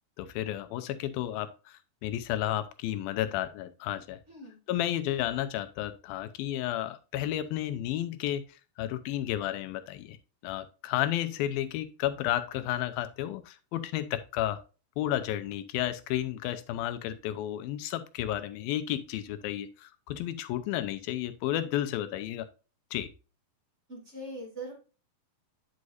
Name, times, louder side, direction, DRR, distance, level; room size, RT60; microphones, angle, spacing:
voice 1, 0.2-4.2 4.7-8.4 8.8-10.2 10.4-14.6 15.0-22.5 22.9-23.1, left 12 dB, 85° left, 11 dB, 2.5 m, -32 dB
voice 2, 4.3-4.6 23.9-24.7, right 1 dB, 25° right, 0 dB, 1.9 m, -41 dB
9.6 x 6.4 x 2.6 m, 0.33 s
omnidirectional pair, 4.2 m